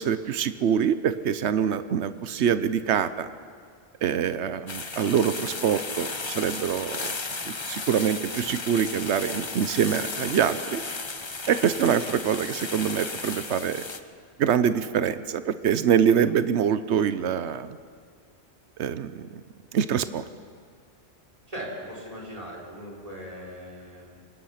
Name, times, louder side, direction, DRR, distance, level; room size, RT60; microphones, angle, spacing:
voice 1, 0.0-3.3 4.0-7.1 7.5-10.8 11.5-13.8 14.4-17.8 18.8-19.3 19.7-20.2, right 8 dB, 85° right, 13 dB, 1.1 m, -25 dB
sound 1, 4.7-14.0, left 3 dB, 25° left, 0.9 m, -34 dB
voice 2, 21.5-24.2, equal, 35° right, -2 dB, 4.7 m, -39 dB
25.5 x 19.0 x 5.8 m, 2.2 s
omnidirectional pair, 1.1 m